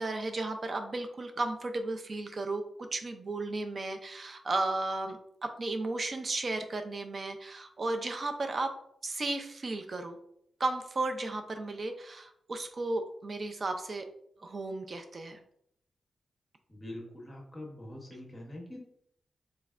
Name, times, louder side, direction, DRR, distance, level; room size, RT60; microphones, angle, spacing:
voice 1, 0.0-2.6 2.9-8.7 9.0-10.2 10.6-14.1 14.4-15.4, right 2 dB, 35° right, 6 dB, 0.4 m, -34 dB
voice 2, 16.7-18.8, left 1 dB, 15° left, 0 dB, 0.8 m, -44 dB
4.1 x 3.1 x 2.4 m, 0.71 s
wide cardioid pair, 180°, 0 cm